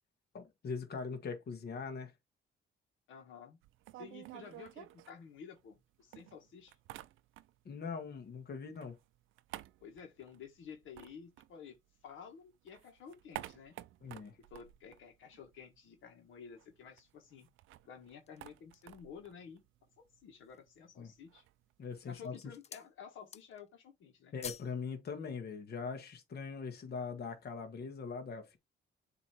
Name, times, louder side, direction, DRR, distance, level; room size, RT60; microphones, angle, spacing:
voice 1, 0.3-2.1 7.6-9.0 14.0-14.3 21.0-21.1 21.8-22.4 24.3-28.6, left 5 dB, 55° left, 1.5 m, -41 dB
voice 2, 3.1-3.6 4.0-6.8 9.8-11.8 12.0-13.8 14.5-17.5 17.8-19.6 20.2-21.4 22.1-24.4, left 7 dB, 80° left, 1.6 m, -52 dB
sound 1, 3.6-5.8 6.1-7.8 8.0-12.2 12.5-15.8 16.1-16.2 16.4-22.2, right 15 dB, 90° right, 0.5 m, -52 dB
sound 2, 18.0-19.0 19.6-19.7 20.2-20.8 21.5-21.8 22.2-22.9 23.2-23.7 24.0-24.8 25.1-25.2, left 7 dB, 35° left, 0.4 m, -50 dB
7.0 x 3.1 x 4.3 m
cardioid pair, 90°, 20 cm